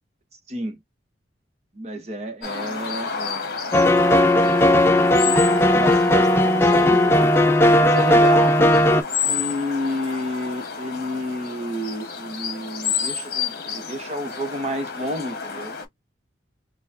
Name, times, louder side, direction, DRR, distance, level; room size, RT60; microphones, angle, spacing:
voice 1, 1.7-3.9 5.1-7.3 7.8-8.5 8.9-15.7, equal, 35° right, 0.9 m, -31 dB
sound 1, 2.4-15.8, left 6 dB, 55° left, 1.1 m, -30 dB
sound 2, 3.7-9.0, left 1 dB, 15° left, 0.3 m, -16 dB
4.3 x 2.4 x 2.6 m
head